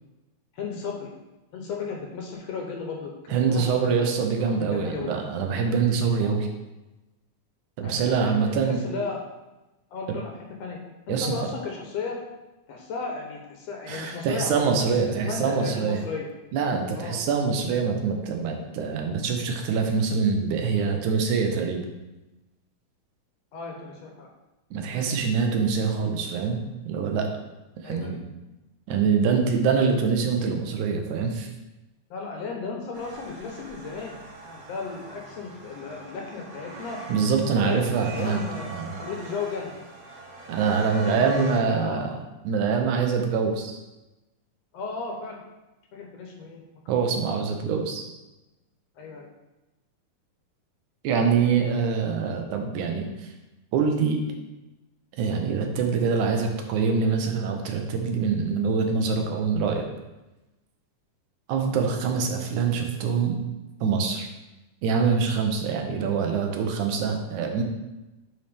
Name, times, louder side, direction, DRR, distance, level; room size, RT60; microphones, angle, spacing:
voice 1, 0.5-1.1 1.5-4.1 4.7-5.1 6.2-6.4 7.8-9.2 9.9-10.3 10.6-10.8 11.1-12.2 12.7-14.7 15.2-16.3 16.9-17.2 23.5-24.3 27.8-28.2 32.1-37.0 37.6-38.7 39.0-39.7 40.4-42.1 44.7-45.4 45.9-46.6 47.1-47.3 49.0-49.3, left 4 dB, 70° left, 0 dB, 1.8 m, -35 dB
voice 2, 3.3-6.5 7.8-8.8 10.1-10.2 11.1-11.5 13.9-16.0 16.5-21.9 24.7-27.3 27.8-28.2 28.9-31.5 37.1-38.4 38.7-39.0 40.5-42.2 42.4-43.8 46.9-48.1 51.0-53.3 53.7-54.2 55.2-59.9 61.5-63.4 63.8-64.3 64.8-67.6, right 5 dB, 80° right, 3 dB, 2.3 m, -24 dB
sound 1, 32.9-41.6, right 2 dB, 60° right, 2.2 m, -42 dB
9.5 x 4.3 x 3.5 m, 1.0 s
omnidirectional pair, 3.5 m